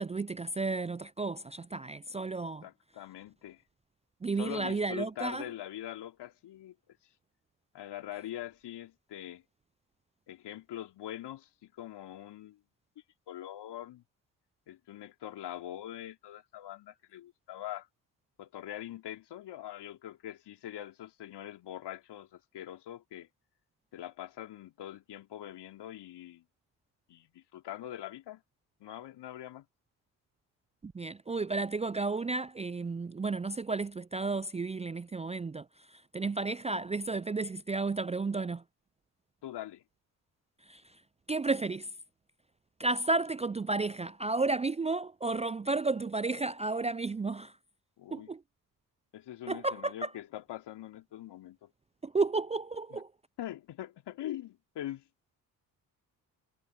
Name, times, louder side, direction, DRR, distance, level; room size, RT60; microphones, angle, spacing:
voice 1, 0.0-2.7 4.2-5.4 30.8-35.7 35.9-38.6 40.7-40.8 41.3-41.9 42.8-47.5 48.1-48.4 49.5-50.1 52.0-53.1, right 3 dB, 15° right, 0.6 m, -32 dB
voice 2, 2.6-3.6 4.4-6.7 7.7-9.4 10.3-12.6 13.3-14.0 14.7-17.9 18.4-23.3 23.9-26.4 27.1-28.4 28.8-29.6 39.4-39.8 48.0-48.3 49.1-51.7 52.9-53.0 53.4-55.0, left 12 dB, 55° left, 3.4 m, -43 dB
figure-of-eight pair, 50°, 48 cm